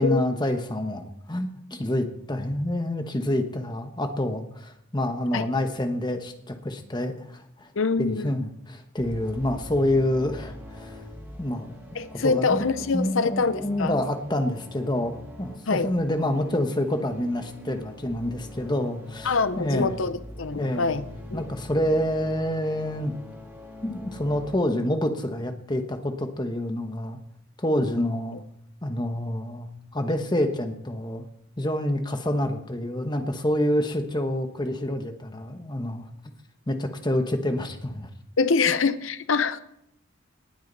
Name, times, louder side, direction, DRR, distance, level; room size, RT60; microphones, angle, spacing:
voice 1, 0.0-7.7 8.0-11.0 11.4-11.7 12.1-12.6 12.9-19.9 20.6-20.9 21.3-23.1 23.8-27.2 27.6-28.4 28.8-31.2 31.6-36.1 36.7-38.1, left 1 dB, 20° left, 6 dB, 1.1 m, -27 dB
voice 2, 7.8-8.3 11.9-13.9 15.7-15.9 19.2-21.0 21.3-21.5 38.4-39.6, left 4 dB, 65° left, 13 dB, 0.7 m, -25 dB
sound 1, 9.0-24.6, left 1 dB, 10° right, 2.1 m, -43 dB
19.0 x 8.8 x 4.1 m, 0.75 s
head